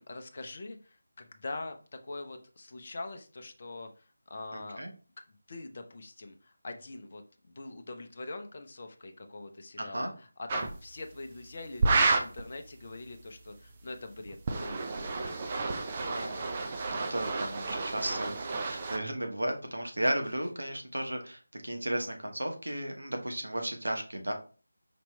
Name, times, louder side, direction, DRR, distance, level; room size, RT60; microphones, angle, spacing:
voice 1, 0.0-4.8 5.5-15.3, left 2 dB, 40° left, 5 dB, 0.6 m, -43 dB
voice 2, 4.5-4.9 9.8-10.1 16.0-16.5 16.9-24.3, right 1 dB, 75° right, 4 dB, 1.1 m, -34 dB
sound 1, 10.5-10.8 11.8-12.4 14.3-19.0, right 3 dB, 25° right, 0.5 m, -30 dB
5.1 x 3.0 x 3.2 m, 0.37 s
figure-of-eight pair, 165°, 0 cm